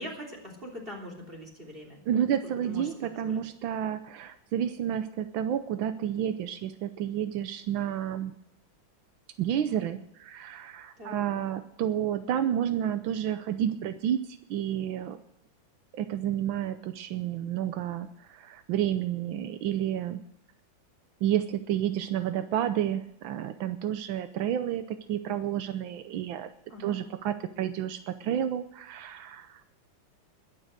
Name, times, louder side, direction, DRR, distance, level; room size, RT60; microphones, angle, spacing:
voice 1, 0.0-2.2 2.6-3.4 11.0-11.2 26.7-27.0, left 1 dB, 25° right, 0 dB, 3.5 m, -42 dB
voice 2, 2.1-8.3 9.4-15.2 15.9-20.2 21.2-26.5 26.8-29.6, right 10 dB, 90° right, 9 dB, 1.5 m, -30 dB
21.0 x 7.8 x 6.6 m, 0.75 s
omnidirectional pair, 2.1 m